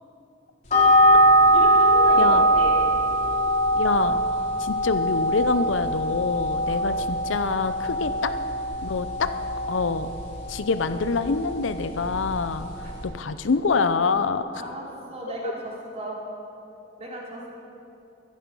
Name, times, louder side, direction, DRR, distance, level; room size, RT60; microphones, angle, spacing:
sound 1, 0.7-13.0, right 1 dB, 40° left, 3.1 m, -22 dB
voice 1, 1.5-2.9 6.6-7.0 12.8-12.9 14.5-16.2 17.0-17.5, right 1 dB, 35° right, -3 dB, 3.1 m, -36 dB
voice 2, 3.7-4.2 4.6-8.3 8.8-9.3 9.7-10.1 10.5-12.7 13.0-14.4, left 4 dB, 90° left, 11 dB, 0.6 m, -25 dB
15.0 x 13.5 x 5.5 m, 2.8 s
head